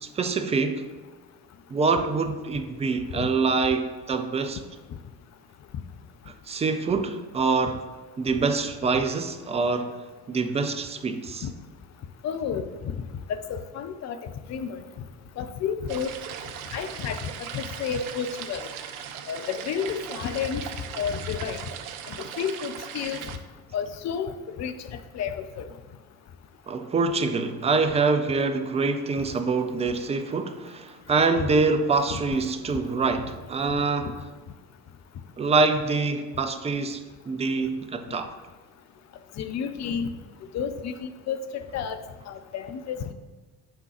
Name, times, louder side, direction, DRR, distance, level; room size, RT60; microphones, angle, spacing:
voice 1, 0.0-0.8 1.7-4.6 6.5-7.8 8.2-9.9 10.3-11.4 26.7-34.1 35.4-37.0 37.3-38.3, right 4 dB, 15° right, 7 dB, 0.4 m, -25 dB
voice 2, 12.2-13.0 13.3-14.8 15.4-16.1 16.7-18.7 19.3-20.6 21.0-21.6 22.1-23.2 23.7-25.7 32.1-32.2 39.4-40.1 40.5-42.0 42.3-43.1, left 7 dB, 35° left, 9 dB, 0.5 m, -31 dB
sound 1, 15.9-23.4, right 9 dB, 65° right, 0.6 m, -38 dB
9.5 x 3.7 x 2.9 m, 1.3 s
figure-of-eight pair, 50°, 48 cm